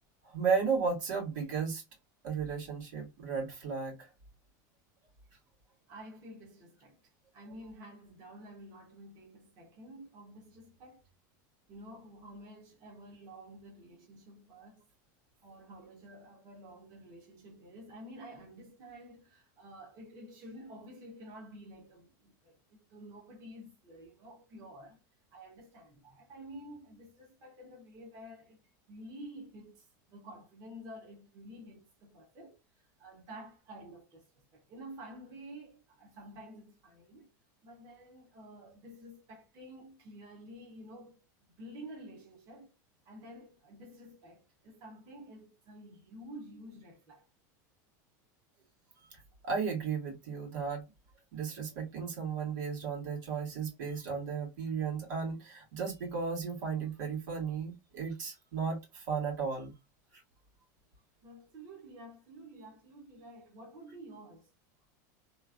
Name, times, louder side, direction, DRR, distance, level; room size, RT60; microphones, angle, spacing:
voice 1, 0.2-1.8 2.2-4.1 49.1-50.9 51.3-59.7 60.1-60.2, right 5 dB, 80° right, 1.8 m, -34 dB
voice 2, 5.9-11.1 11.7-14.8 15.4-25.0 25.3-28.6 28.9-32.6 33.0-37.3 37.6-41.2 41.6-42.7 43.0-47.3 61.2-64.5, right 1 dB, 40° right, 1.0 m, -50 dB
3.1 x 2.4 x 2.4 m
supercardioid pair, 155°, 10 cm